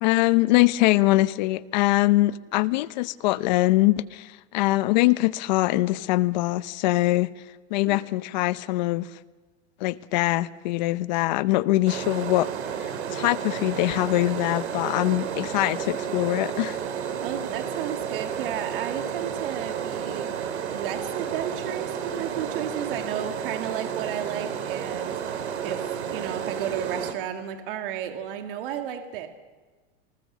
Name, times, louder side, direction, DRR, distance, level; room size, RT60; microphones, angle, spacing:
voice 1, 0.0-7.3 7.7-9.1 9.8-12.5 13.1-16.8, left 18 dB, 40° left, 0.7 m, -23 dB
sound 1, 11.9-27.1, right 8 dB, 75° right, 2.9 m, -32 dB
voice 2, 17.2-29.3, right 10 dB, 55° right, 2.1 m, -33 dB
27.0 x 19.5 x 7.4 m
supercardioid pair, 165°, 33 cm